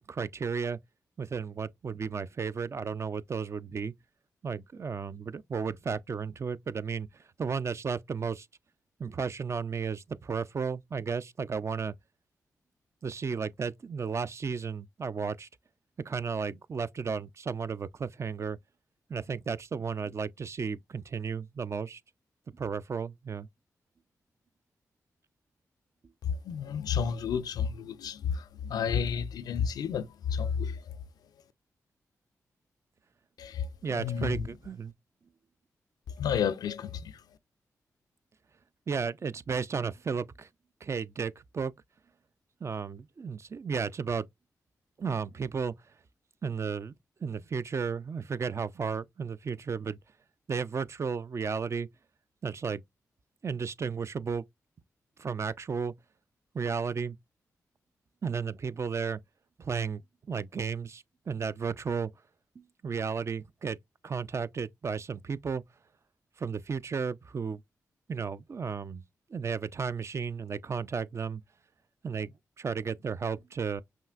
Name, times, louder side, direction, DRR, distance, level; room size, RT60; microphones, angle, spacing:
voice 1, 0.1-0.8 1.2-3.9 4.4-8.5 9.0-11.9 13.0-15.5 16.1-18.6 19.1-22.0 22.5-23.5 33.8-34.9 38.9-40.5 40.8-41.7 42.6-44.3 45.0-45.7 46.4-46.9 47.2-50.0 50.5-51.9 52.4-52.8 53.4-54.4 55.2-55.9 56.5-57.2 58.2-59.2 59.6-60.0 60.3-62.1 62.6-63.8 64.0-65.6 66.4-67.6 68.1-69.0 69.3-71.4 72.0-73.8, right 5 dB, 45° right, 0.3 m, -33 dB
voice 2, 26.2-31.0 33.4-34.5 36.1-37.2, left 7 dB, 85° left, 0.4 m, -31 dB
5.7 x 2.4 x 2.4 m
cardioid pair, 55°, 7 cm